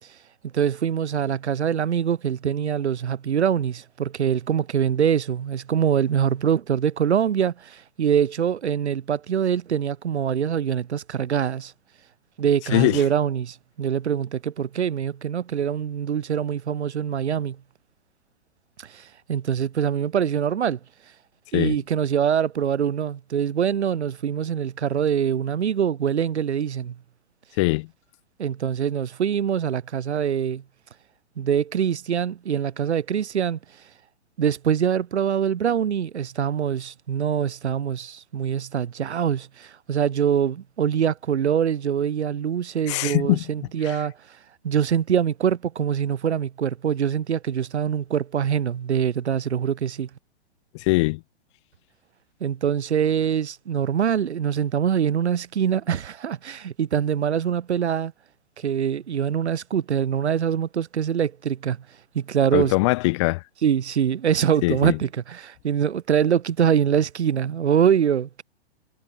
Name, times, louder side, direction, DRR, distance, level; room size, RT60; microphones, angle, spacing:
voice 1, 0.5-11.7 12.4-17.6 18.8-20.8 21.5-26.9 28.4-30.6 31.4-33.6 34.4-44.1 44.6-50.1 52.4-58.1 58.6-61.8 62.1-62.7 63.6-68.4, right 8 dB, 85° right, 1.1 m, -24 dB
voice 2, 12.7-13.0 21.5-21.8 27.6-27.9 42.9-43.4 43.8-44.0 50.7-51.2 62.5-63.4 64.6-65.0, left 24 dB, 30° left, 0.5 m, -22 dB
hypercardioid pair, 135°, 33 cm